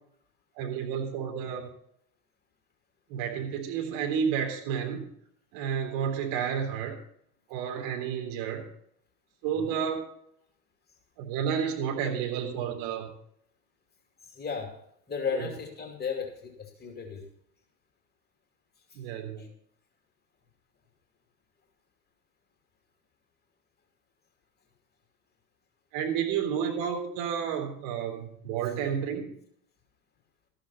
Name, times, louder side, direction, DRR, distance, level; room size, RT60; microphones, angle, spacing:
voice 1, 0.6-1.7 3.1-5.0 5.5-6.9 7.5-8.6 9.4-10.0 11.2-13.1 15.3-15.4 18.9-19.4 25.9-29.3, right 7 dB, 45° right, 2 dB, 3.6 m, -31 dB
voice 2, 14.2-14.8 15.1-17.2 19.4-19.5, left 6 dB, 20° left, 3 dB, 2.8 m, -35 dB
13.5 x 12.0 x 4.2 m, 0.68 s
figure-of-eight pair, 80°, 45 cm